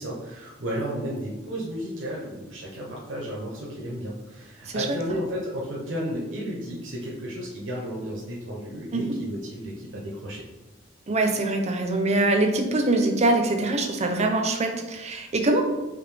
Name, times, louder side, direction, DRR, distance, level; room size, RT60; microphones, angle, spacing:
voice 1, 0.0-10.4, equal, 70° right, -4 dB, 0.8 m, -33 dB
voice 2, 4.7-5.0 8.9-9.1 11.1-15.6, right 2 dB, 35° right, 4 dB, 0.6 m, -23 dB
5.0 x 2.7 x 3.3 m, 1.1 s
head